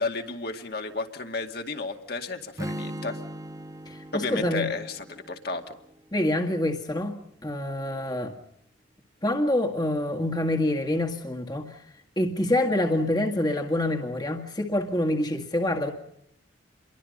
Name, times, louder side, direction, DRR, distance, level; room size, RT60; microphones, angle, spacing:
voice 1, 0.0-3.2 4.1-5.6, left 3 dB, 50° left, 4 dB, 2.3 m, -32 dB
Strum, 2.6-6.7, right 1 dB, 15° right, 0.8 m, -39 dB
voice 2, 3.9-4.7 6.1-7.1 7.4-8.3 9.2-11.8 12.2-15.9, left 1 dB, 20° left, 2 dB, 1.9 m, -26 dB
28.5 x 23.0 x 5.4 m, 0.74 s
head